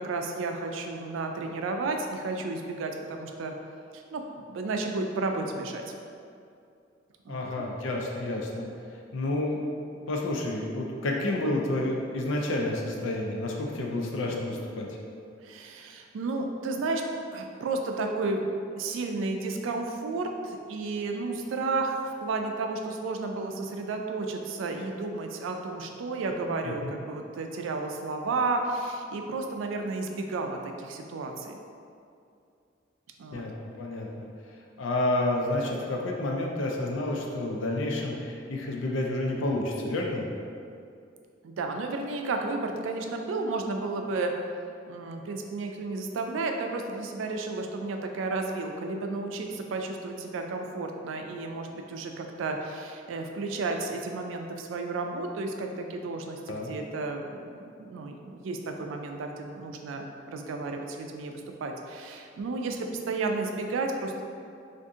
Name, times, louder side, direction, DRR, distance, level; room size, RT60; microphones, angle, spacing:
voice 1, 0.0-3.5 3.9-5.8 7.3-7.6 15.4-17.0 17.3-18.4 18.8-31.6 33.2-33.4 41.4-44.3 44.9-61.3 61.6-64.2, right 3 dB, 90° right, 3 dB, 0.3 m, -32 dB
voice 2, 7.3-8.7 9.1-9.6 9.9-14.9 26.3-27.0 33.3-34.3 34.8-40.3 56.5-56.8, left 1 dB, 80° left, 0 dB, 0.5 m, -30 dB
2.6 x 2.5 x 3.5 m, 2.4 s
head